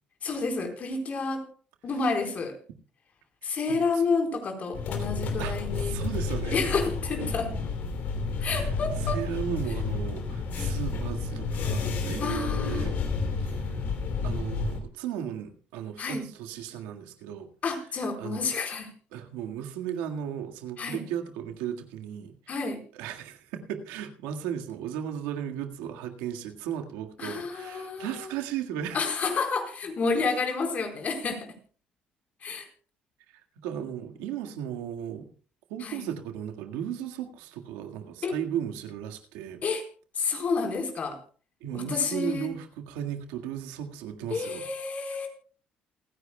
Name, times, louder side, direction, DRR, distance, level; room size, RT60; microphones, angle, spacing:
voice 1, 0.2-1.5 1.8-2.6 3.4-6.0 6.5-7.5 8.4-9.2 12.2-12.9 16.0-16.3 17.6-18.9 20.8-21.0 22.5-22.8 27.2-28.3 28.9-31.5 32.4-32.7 35.8-36.0 38.2-38.3 39.6-39.8 40.2-41.2 41.7-42.5 44.3-45.3, left 4 dB, 50° left, 4 dB, 4.3 m, -30 dB
voice 2, 3.4-3.9 5.0-5.1 5.4-6.7 8.4-8.7 9.0-13.0 13.4-13.7 14.2-17.5 18.2-18.4 19.1-22.3 22.9-29.0 33.3-35.3 35.7-39.6 41.6-44.6, right 9 dB, 90° right, 5 dB, 1.7 m, -36 dB
sound 1, 4.7-14.8, left 4 dB, 65° left, 2.9 m, -30 dB
28.5 x 10.0 x 2.3 m, 0.39 s
supercardioid pair, 80°, 3 cm